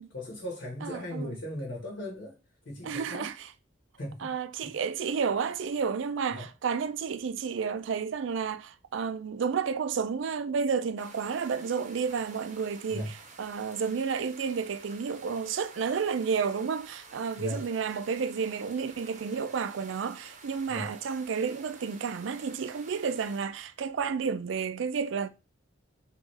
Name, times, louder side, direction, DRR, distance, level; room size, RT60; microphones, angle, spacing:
voice 1, 0.0-2.4 2.6-3.3 3.9-4.3 4.6-4.7 6.3-6.5 12.9-13.1 17.4-17.6 20.7-20.9, left 1 dB, 75° left, 1.4 m, -37 dB
voice 2, 0.8-1.4 2.8-3.3 4.2-25.3, right 6 dB, 70° right, 0.4 m, -31 dB
sound 1, 11.0-23.4, right 4 dB, 40° right, 0.7 m, -51 dB
3.5 x 3.1 x 3.2 m
head